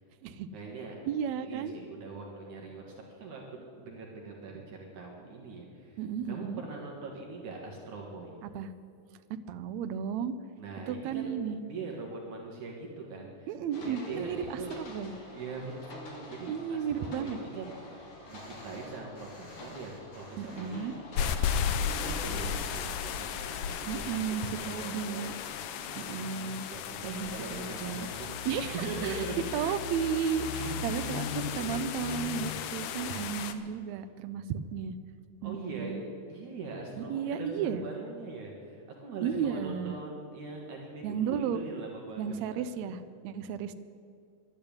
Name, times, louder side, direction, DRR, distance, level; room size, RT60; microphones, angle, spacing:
voice 1, 0.5-0.9 1.4-6.0 6.2-8.4 10.6-13.5 13.8-14.8 15.3-21.1 21.4-25.3 25.8-29.4 30.7-30.9 35.4-36.0 36.3-42.7, right 3 dB, 65° right, -1 dB, 2.8 m, -42 dB
voice 2, 1.0-1.7 6.0-6.6 8.4-8.7 9.5-10.3 10.9-11.6 13.5-15.1 16.5-17.4 20.4-20.9 23.9-25.3 26.0-26.6 27.0-28.1 28.4-29.2 29.5-34.9 35.4-36.0 37.0-37.8 39.2-39.9 41.0-41.6 42.2-43.7, right 7 dB, 85° right, 10 dB, 1.6 m, -34 dB
sound 1, 13.7-23.5, left 2 dB, 50° left, 3.5 m, -48 dB
sound 2, 18.3-21.0 21.4-21.5 21.9-22.0 22.3-26.4 26.7-26.8 27.1-29.1 29.9-30.7, left 2 dB, 35° left, 2.7 m, -58 dB
sound 3, 21.2-33.5, left 8 dB, 75° left, 2.1 m, -35 dB
12.0 x 10.5 x 8.8 m, 2.4 s
omnidirectional pair, 3.9 m